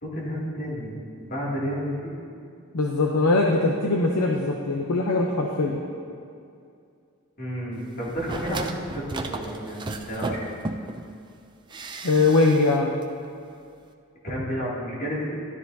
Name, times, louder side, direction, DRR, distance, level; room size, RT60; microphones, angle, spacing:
voice 1, 0.0-0.9 1.2-2.1 7.4-10.5 14.2-15.3, equal, 45° left, -6 dB, 2.5 m, -31 dB
voice 2, 2.7-5.8 12.0-12.9, left 3 dB, 85° left, 1 dB, 0.7 m, -21 dB
sound 1, 8.0-11.1 11.7-12.8 13.0-13.1, right 3 dB, 20° right, 0.4 m, -34 dB
12.5 x 12.0 x 2.7 m, 2.4 s
head